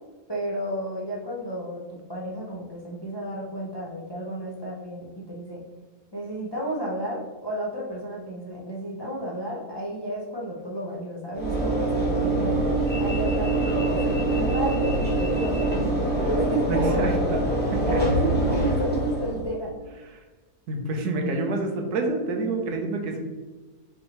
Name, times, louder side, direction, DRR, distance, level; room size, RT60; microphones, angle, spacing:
voice 1, 0.3-5.6 6.1-12.6 13.0-17.0 17.3-17.4 17.8-19.7, equal, 40° left, -5 dB, 0.3 m, -32 dB
Train / Engine / Alarm, 11.3-19.6, right 2 dB, 10° left, 0.9 m, -24 dB
voice 2, 16.7-17.4 17.9-18.0 20.1-20.2 20.7-23.2, right 2 dB, 85° right, 2 dB, 1.3 m, -27 dB
5.4 x 3.0 x 3.0 m, 1.3 s
omnidirectional pair, 1.6 m